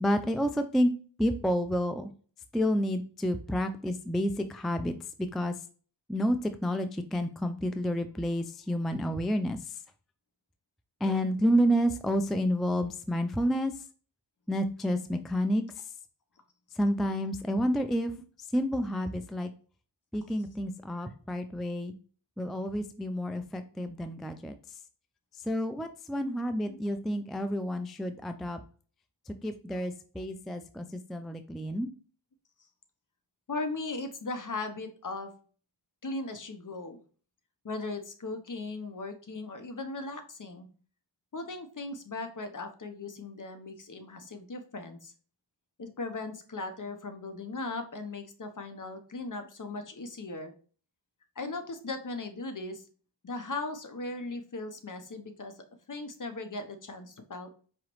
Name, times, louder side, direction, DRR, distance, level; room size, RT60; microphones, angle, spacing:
voice 1, 0.0-0.9 1.2-2.1 2.5-4.9 5.3-5.5 6.1-9.8 11.0-13.7 14.5-15.6 16.8-18.1 18.5-19.5 20.1-21.9 22.4-24.5 25.5-28.6 29.3-31.9, equal, ahead, 8 dB, 0.3 m, -29 dB
voice 2, 33.5-35.3 36.0-37.0 37.6-40.7 41.3-45.1 45.8-50.5 51.4-52.8 53.2-57.5, left 3 dB, 40° left, 7 dB, 0.8 m, -38 dB
4.8 x 3.0 x 3.0 m, 0.41 s
cardioid pair, 50°, 46 cm